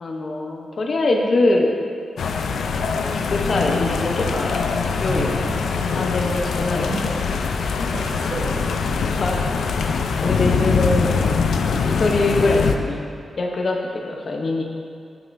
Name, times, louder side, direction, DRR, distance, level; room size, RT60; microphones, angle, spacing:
voice 1, 0.0-1.7 2.9-4.6 5.0-5.4 5.9-7.1 9.1-9.5 10.2-11.1 11.5-13.0 13.4-13.8 14.1-14.6, left 2 dB, 50° left, 1 dB, 0.8 m, -23 dB
sound 1, 2.2-12.8, left 5 dB, 80° left, 0.4 m, -23 dB
voice 2, 5.0-5.8 6.5-7.1 7.6-8.9 10.1-10.7, right 1 dB, 75° right, -2 dB, 1.0 m, -32 dB
9.0 x 5.4 x 2.6 m, 2.4 s
wide cardioid pair, 110°, 0 cm